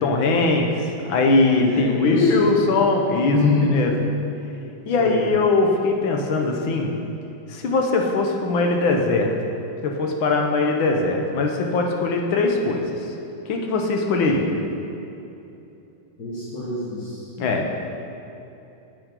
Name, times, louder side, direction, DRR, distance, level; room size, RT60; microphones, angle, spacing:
voice 1, 0.0-3.4 3.7-3.9 4.8-6.9 7.5-9.3 9.8-13.1 13.5-14.5 17.4-17.8, left 3 dB, 70° left, 2 dB, 1.6 m, -21 dB
voice 2, 1.7-2.4 3.2-3.8 5.0-5.2 16.2-17.2, left 2 dB, 50° left, -10 dB, 1.8 m, -24 dB
8.7 x 7.9 x 3.7 m, 2.9 s
omnidirectional pair, 2.3 m